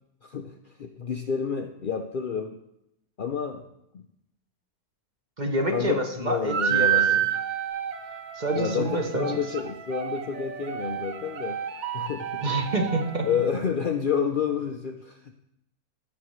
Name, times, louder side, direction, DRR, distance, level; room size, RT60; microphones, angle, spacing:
voice 1, 0.2-0.5 0.8-2.6 3.2-3.6 3.9-4.1 5.7-7.2 8.6-11.6 11.9-12.5 13.2-15.4, left 7 dB, 85° left, 4 dB, 0.4 m, -29 dB
voice 2, 5.4-7.3 8.4-9.4 12.4-13.3, right 1 dB, 35° right, 3 dB, 0.9 m, -27 dB
sound 1, 6.4-13.5, right 9 dB, 55° right, 0.5 m, -29 dB
17.0 x 6.2 x 3.1 m, 0.81 s
omnidirectional pair, 1.6 m